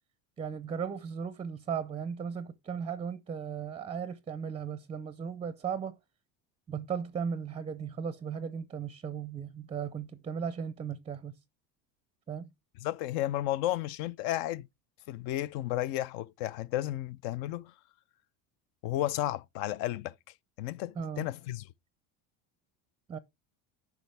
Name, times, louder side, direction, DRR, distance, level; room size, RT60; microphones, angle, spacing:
voice 1, 0.4-6.0 6.7-11.4 12.3-12.5 21.0-21.3 23.1-23.2, right 7 dB, 15° right, 0.5 m, -36 dB
voice 2, 12.8-14.7 15.1-17.7 18.8-20.1 20.6-21.7, left 14 dB, 65° left, 0.6 m, -33 dB
10.5 x 5.9 x 3.3 m
supercardioid pair, 120°, 40 cm